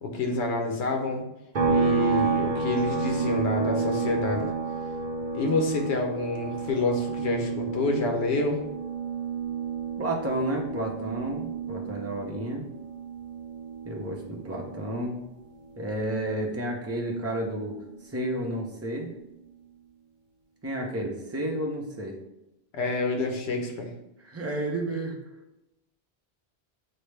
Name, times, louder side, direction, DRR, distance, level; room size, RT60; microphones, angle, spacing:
voice 1, 0.0-1.2 1.7-4.5 5.3-8.6 22.7-23.9, left 2 dB, 80° left, 3 dB, 1.0 m, -28 dB
sound 1, 1.5-15.1 15.4-17.6, right 4 dB, 50° right, 0.8 m, -31 dB
voice 2, 10.0-12.7 13.8-15.2 15.8-17.8 18.0-19.1 20.6-22.2 24.2-25.2, right 1 dB, 15° right, 0 dB, 0.5 m, -31 dB
6.4 x 2.1 x 3.2 m, 0.88 s
omnidirectional pair, 1.1 m